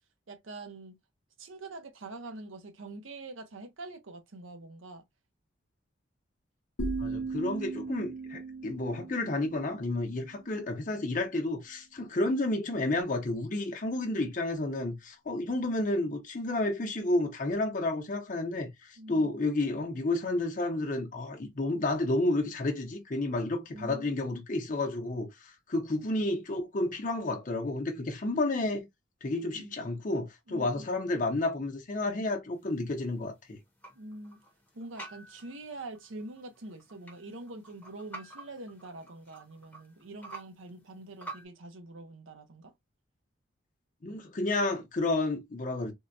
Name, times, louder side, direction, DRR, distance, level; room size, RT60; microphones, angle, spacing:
voice 1, 0.3-1.0 1.4-5.0 19.0-19.4 23.7-24.2 29.5-29.8 30.5-30.9 34.0-34.4 34.7-42.7, right 2 dB, 90° right, 0.7 m, -45 dB
sound 1, 6.8-10.7, right 3 dB, 85° left, 0.7 m, -38 dB
voice 2, 7.0-28.9 29.2-33.6 44.0-45.9, left 2 dB, 40° left, 0.7 m, -31 dB
sound 2, 32.5-41.4, right 2 dB, 10° left, 0.7 m, -49 dB
3.6 x 2.1 x 2.5 m
head